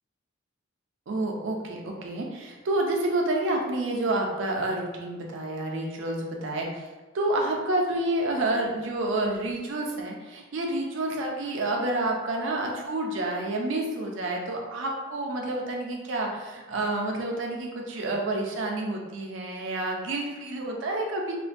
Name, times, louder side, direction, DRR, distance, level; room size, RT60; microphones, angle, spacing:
voice 1, 1.1-6.8 7.1-21.4, right 2 dB, 65° right, 1 dB, 0.4 m, -29 dB
2.4 x 2.2 x 2.5 m, 1.2 s
head